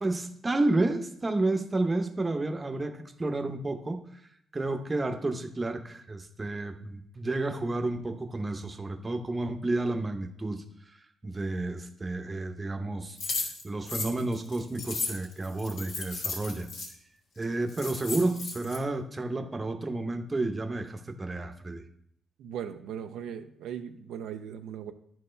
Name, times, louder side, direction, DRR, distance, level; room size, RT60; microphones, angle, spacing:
voice 1, 0.0-4.1 4.5-10.6 11.2-13.2 13.6-16.7 17.4-21.8, right 2 dB, 25° right, 6 dB, 0.8 m, -31 dB
sound 1, 13.2-16.9 17.4-17.5 17.7-18.8, left 3 dB, 80° left, 1.9 m, -35 dB
voice 2, 22.4-24.9, right 8 dB, 85° right, 6 dB, 0.5 m, -38 dB
11.0 x 4.4 x 3.3 m, 0.70 s
cardioid pair, 90°, 0 cm